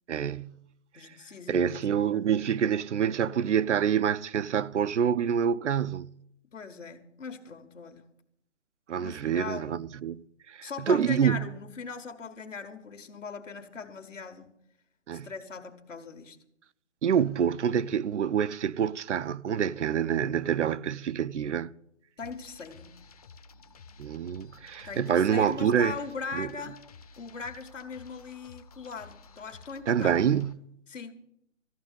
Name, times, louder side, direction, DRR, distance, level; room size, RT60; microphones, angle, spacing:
voice 1, 0.1-0.6 1.0-1.1 1.5-6.1 8.9-11.5 15.1-15.3 17.0-21.7 24.0-26.0 26.3-26.5 29.9-30.6, right 8 dB, 70° right, 0.6 m, -27 dB
voice 2, 0.9-2.3 6.5-8.1 9.0-9.7 10.6-14.5 15.1-16.4 22.2-22.9 24.8-26.8 27.2-30.2 30.9-31.1, left 5 dB, 80° left, 1.8 m, -40 dB
sound 1, 22.2-30.5, left 4 dB, 30° left, 0.7 m, -52 dB
14.0 x 6.6 x 9.1 m
hypercardioid pair, 160°, 37 cm